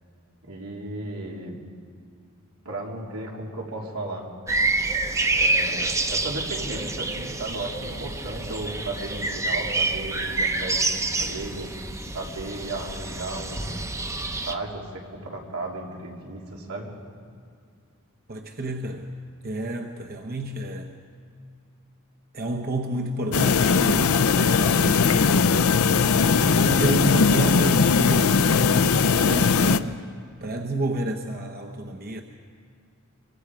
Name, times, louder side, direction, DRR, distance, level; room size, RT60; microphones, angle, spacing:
voice 1, 0.4-1.6 2.6-4.3 5.2-11.7 12.1-13.8 14.4-16.9, right 2 dB, 85° right, -2 dB, 3.5 m, -35 dB
sound 1, 4.5-14.5, right 2 dB, 15° right, 0.8 m, -27 dB
voice 2, 18.3-19.1 19.4-20.9 22.3-25.7 26.4-30.0 30.4-32.2, right 1 dB, 45° right, 3 dB, 1.0 m, -30 dB
sound 2, 23.3-29.8, left 5 dB, 80° left, 0.6 m, -19 dB
24.5 x 23.5 x 5.0 m, 2.2 s
head